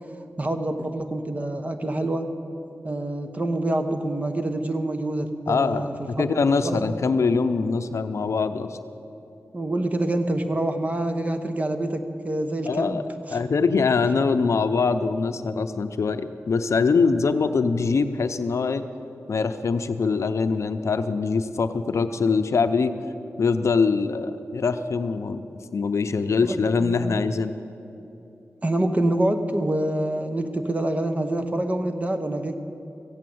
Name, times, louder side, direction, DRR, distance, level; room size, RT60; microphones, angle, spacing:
voice 1, 0.4-2.3 2.8-6.8 9.5-13.7 26.1-27.2 28.6-32.5, right 1 dB, 30° right, 7 dB, 1.0 m, -27 dB
voice 2, 5.5-8.8 12.7-13.0 13.3-18.8 19.3-22.9 23.4-25.4 25.7-27.6, left 4 dB, 65° left, 9 dB, 0.6 m, -23 dB
14.5 x 8.5 x 7.8 m, 2.8 s
wide cardioid pair, 90°, 5 cm